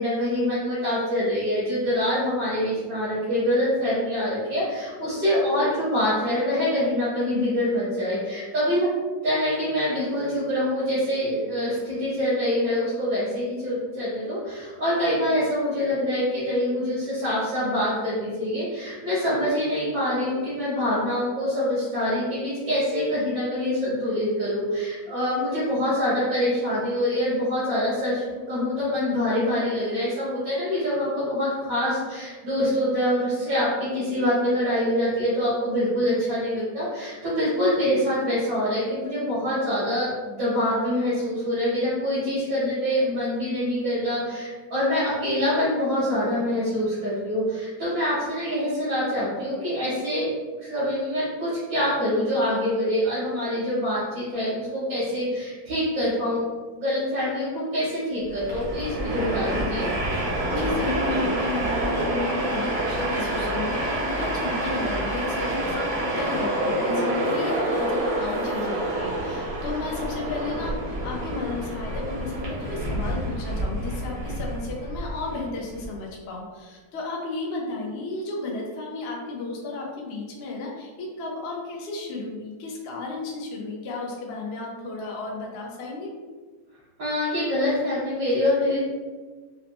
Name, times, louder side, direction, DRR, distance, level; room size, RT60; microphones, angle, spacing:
voice 1, 0.0-8.9 9.2-56.4 56.7-59.9 87.0-88.8, left 1 dB, 70° right, -13 dB, 2.4 m, -25 dB
Train, 58.3-75.9, right 1 dB, 55° right, 1.5 m, -28 dB
voice 2, 60.5-86.1, left 3 dB, 75° left, -2 dB, 0.5 m, -33 dB
5.5 x 2.1 x 2.9 m, 1.4 s
omnidirectional pair, 2.2 m